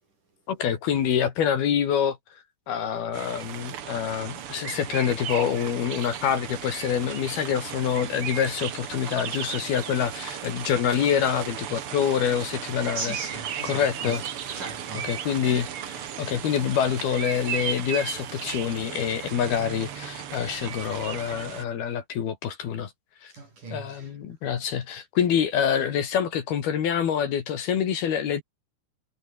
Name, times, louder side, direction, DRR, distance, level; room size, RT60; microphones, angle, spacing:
voice 1, 0.5-13.1 13.7-14.6 15.0-22.9 23.2-23.3 23.7-28.4, left 8 dB, 65° left, 4.2 m, -26 dB
sound 1, 3.1-21.6, right 9 dB, 70° right, 1.3 m, -35 dB
voice 2, 13.0-14.2 14.6-15.1 20.3-20.4 23.3-24.2, right 3 dB, 45° right, 9.2 m, -38 dB
omnidirectional pair, 4.9 m